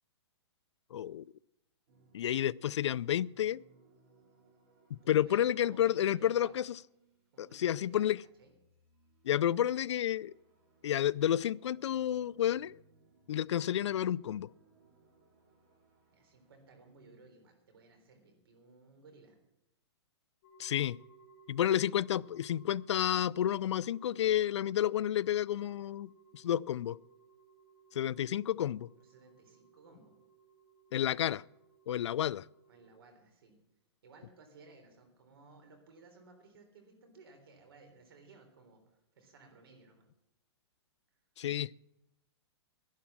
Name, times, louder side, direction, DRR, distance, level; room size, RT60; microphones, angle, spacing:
voice 1, 0.9-1.2 2.1-3.6 4.9-6.8 7.4-8.2 9.2-10.3 10.8-12.8 13.3-14.5 20.6-21.0 21.5-27.0 27.9-28.9 30.9-31.4 31.9-32.5 41.4-41.7, left 11 dB, 85° left, 0.4 m, -30 dB
sound 1, 1.9-7.6 8.1-17.2, right 3 dB, 35° right, 2.8 m, -67 dB
voice 2, 4.9-6.6 7.3-8.1 8.4-8.5 16.1-19.4 29.0-30.1 32.7-33.6 34.0-38.8 39.2-40.1, right 3 dB, 55° right, 3.7 m, -58 dB
sound 2, 20.4-33.0, right 5 dB, 30° left, 5.5 m, -62 dB
11.5 x 10.5 x 7.4 m
hypercardioid pair, 180°, 15 cm